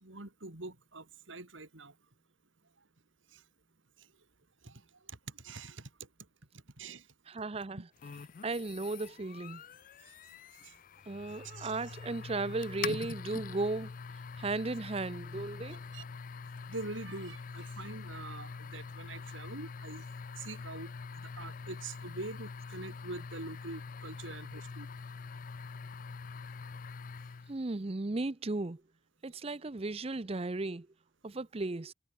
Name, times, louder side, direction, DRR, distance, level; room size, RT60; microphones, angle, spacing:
voice 1, 0.0-1.9 3.3-3.4 4.6-4.8 5.1-5.9 6.8-7.1 10.0-10.1 10.6-10.7 11.3-12.0 15.6-16.1 16.7-20.1 20.4-24.9, right 2 dB, 75° right, 2.9 m, -45 dB
voice 2, 7.3-7.9 8.4-9.6 11.1-13.9 14.4-15.8 27.5-28.8 29.2-30.9 31.2-31.9, right 2 dB, 30° right, 0.6 m, -35 dB
sound 1, 8.0-27.6, left 5 dB, 45° left, 0.4 m, -44 dB
head